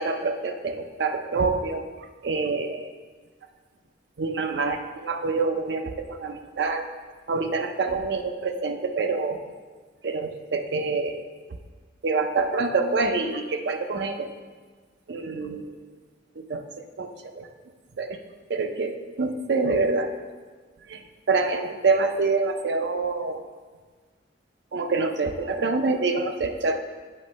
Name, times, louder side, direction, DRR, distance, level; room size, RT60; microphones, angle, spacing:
voice 1, 0.0-1.8 2.2-2.9 4.2-6.8 7.3-9.4 10.0-11.2 12.0-14.3 15.1-15.7 16.5-16.6 17.0-17.1 17.4-17.5 18.0-18.2 18.5-20.1 20.9-21.0 21.3-23.4 24.7-26.8, right 3 dB, 65° right, 6 dB, 0.5 m, -26 dB
8.5 x 3.0 x 5.2 m, 1.5 s
head